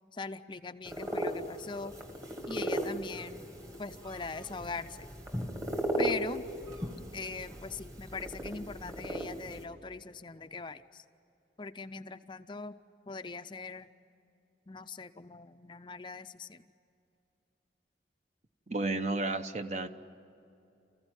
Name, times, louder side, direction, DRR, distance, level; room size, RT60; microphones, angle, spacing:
voice 1, 0.1-1.9 2.5-3.5 3.8-5.1 6.0-6.4 7.1-11.0 11.6-12.8 13.1-13.9 14.7-16.7, left 4 dB, 25° left, 10 dB, 0.5 m, -41 dB
sound 1, 0.9-9.6, right 1 dB, 20° right, 1.8 m, -37 dB
voice 2, 18.7-19.9, right 2 dB, 40° right, 8 dB, 1.0 m, -32 dB
28.5 x 15.5 x 9.8 m, 2.7 s
head